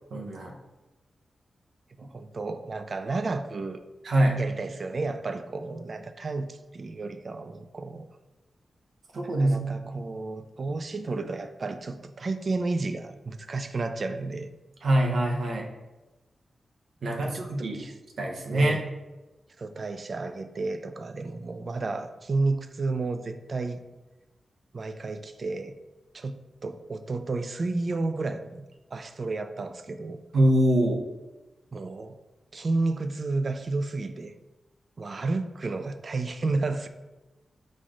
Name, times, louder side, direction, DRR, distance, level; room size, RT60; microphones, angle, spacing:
voice 1, 0.1-0.5 4.0-4.4 9.1-9.6 9.9-10.0 14.8-15.7 17.0-17.8 18.2-18.8 30.3-31.0, right 1 dB, 80° right, 0 dB, 0.7 m, -24 dB
voice 2, 2.0-3.8 4.4-8.1 9.2-14.5 17.0-17.9 18.5-18.8 19.6-23.8 24.7-25.7 26.1-26.4 26.6-30.2 31.7-32.2 32.5-34.3 35.0-36.9, right 3 dB, 50° right, 9 dB, 0.3 m, -32 dB
4.2 x 2.5 x 4.7 m, 1.1 s
cardioid pair, 80°, 0 cm